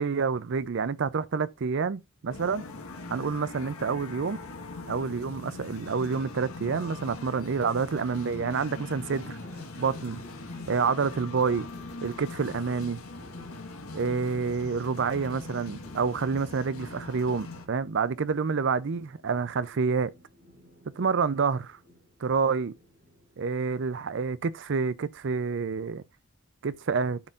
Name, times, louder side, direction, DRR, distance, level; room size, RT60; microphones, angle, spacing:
voice 1, 0.0-2.6 3.1-4.4 4.9-9.4 9.8-10.2 10.7-11.7 12.0-13.0 13.9-20.1 21.0-21.8 22.2-22.7 23.4-26.0 26.6-27.2, right 5 dB, 55° right, 0.5 m, -28 dB
sound 1, 2.3-17.7, left 3 dB, 85° left, 1.4 m, -41 dB
Thunder, 9.1-23.4, equal, 75° right, 4.9 m, -56 dB
12.0 x 4.1 x 2.5 m
head